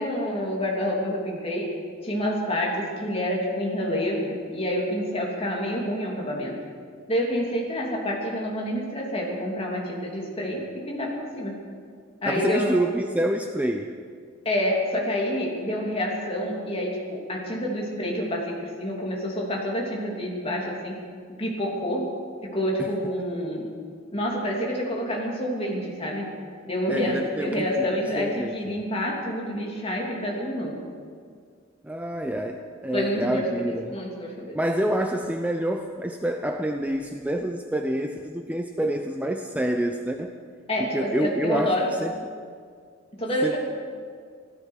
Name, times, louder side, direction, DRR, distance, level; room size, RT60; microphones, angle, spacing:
voice 1, 0.0-1.7 2.0-6.6 7.1-11.5 12.2-12.7 14.4-21.0 21.4-22.2 22.4-23.7 24.1-26.4 26.6-30.8 32.9-33.4 33.9-34.6 40.7-41.9 43.1-43.6, equal, 30° left, -2 dB, 3.0 m, -28 dB
voice 2, 12.2-13.9 26.9-27.7 28.2-28.8 31.8-34.0 34.5-40.3 40.8-42.1 43.4-43.6, right 1 dB, 5° right, 5 dB, 0.5 m, -27 dB
15.5 x 14.0 x 6.5 m, 2.1 s
head